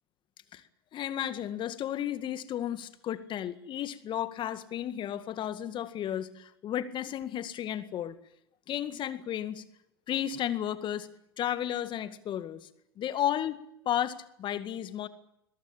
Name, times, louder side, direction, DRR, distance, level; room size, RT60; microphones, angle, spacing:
voice 1, 0.9-8.2 8.7-9.6 10.1-11.1 11.4-12.7 13.0-13.6 13.9-15.1, left 11 dB, 40° left, 12 dB, 2.0 m, -33 dB
22.0 x 21.5 x 8.8 m, 0.82 s
figure-of-eight pair, 75°, 13 cm